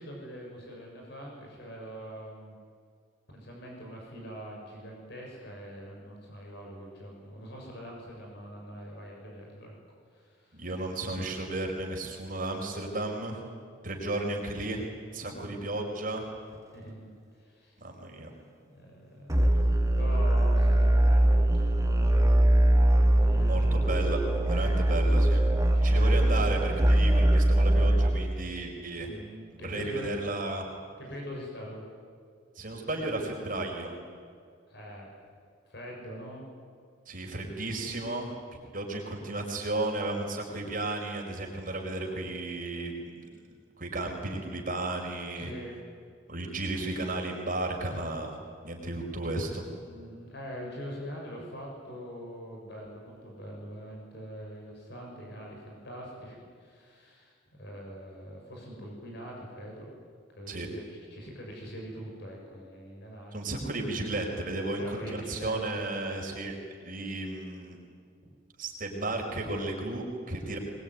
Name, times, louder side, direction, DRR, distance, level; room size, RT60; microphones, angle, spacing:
voice 1, 0.0-2.6 3.3-9.8 10.1-10.7 15.2-15.6 16.7-17.7 18.6-23.9 25.7-26.5 29.0-30.1 31.0-31.8 34.7-35.1 35.6-36.4 45.4-45.7 49.8-59.9 60.3-63.4 64.8-65.6, equal, 60° left, -1 dB, 6.6 m, -43 dB
voice 2, 10.5-13.4 13.8-14.9 15.1-16.3 17.8-18.3 23.5-24.2 24.5-25.4 25.8-29.1 29.5-30.7 32.5-33.9 37.1-38.3 38.7-43.3 43.8-45.5 46.3-48.3 48.6-49.6 60.5-60.7 63.3-66.6 66.8-67.8 68.6-70.6, right 2 dB, 45° right, 1 dB, 4.7 m, -34 dB
sound 1, 19.3-28.1, right 1 dB, 15° right, 2.2 m, -22 dB
22.5 x 22.0 x 9.5 m, 2.1 s
head